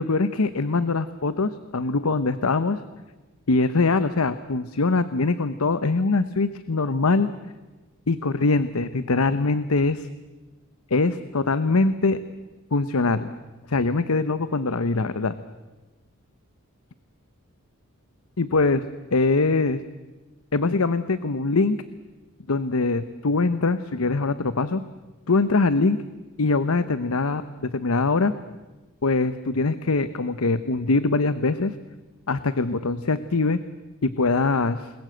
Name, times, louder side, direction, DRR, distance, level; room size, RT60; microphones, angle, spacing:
voice 1, 0.0-2.8 3.5-7.3 8.1-10.1 10.9-12.2 12.7-13.3 13.7-15.4 18.4-18.8 19.1-19.8 20.5-21.8 22.5-24.8 25.3-26.0 26.4-28.3 29.0-31.7 32.3-33.6 34.0-34.9, left 3 dB, 75° left, 13 dB, 0.9 m, -23 dB
28.5 x 21.0 x 7.9 m, 1.2 s
head